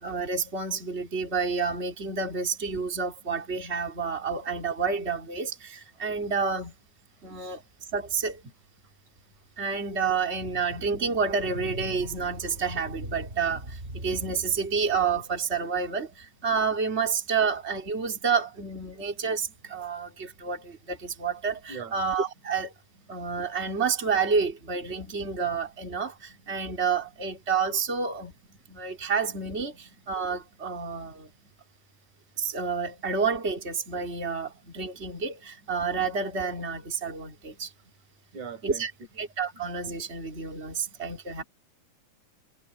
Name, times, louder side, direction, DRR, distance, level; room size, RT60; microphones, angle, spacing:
voice 1, 0.0-6.7 7.2-7.6 7.9-8.4 9.6-22.7 23.1-28.3 28.7-31.3 32.4-37.7 38.6-38.9 39.2-41.4, right 5 dB, 20° right, 3.8 m, -29 dB
voice 2, 38.3-38.8, right 6 dB, 80° right, 7.7 m, -39 dB
omnidirectional pair, 3.4 m